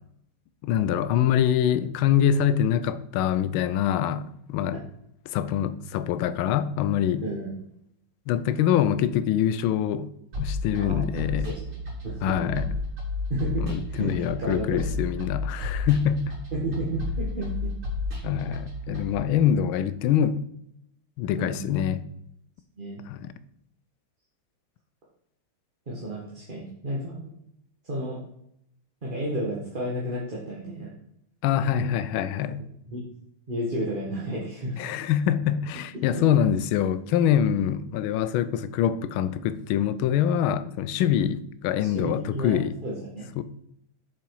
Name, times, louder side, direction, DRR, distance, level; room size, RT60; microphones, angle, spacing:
voice 1, 0.6-4.8 5.3-7.2 8.3-10.1 10.4-11.6 12.2-12.7 13.6-16.4 18.2-20.4 21.2-22.0 23.1-23.3 31.4-32.6 34.8-42.7 43.4-43.5, left 9 dB, 80° left, 1.4 m, -24 dB
voice 2, 7.2-7.5 10.8-11.8 12.0-12.7 13.3-14.8 16.5-17.7 21.4-21.6 22.8-23.0 25.9-27.3 27.8-28.2 29.0-30.9 31.8-31.9 32.9-33.1 33.5-34.8 36.1-36.2 41.8-43.4, right 1 dB, 25° right, 1.5 m, -32 dB
sound 1, 10.3-19.2, left 2 dB, 75° right, 3.5 m, -32 dB
7.6 x 7.0 x 4.8 m
omnidirectional pair, 2.3 m